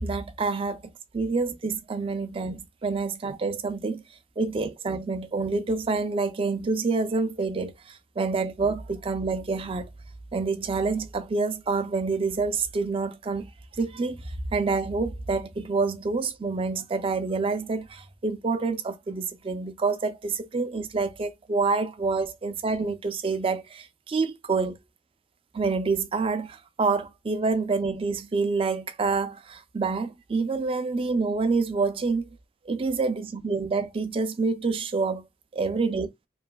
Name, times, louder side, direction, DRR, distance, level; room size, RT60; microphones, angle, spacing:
voice 1, 0.0-4.0 4.4-9.9 10.3-13.5 13.8-24.8 25.5-32.3 32.7-35.3 35.5-36.1, right 4 dB, 30° right, 0.3 m, -27 dB
3.0 x 2.5 x 2.2 m
head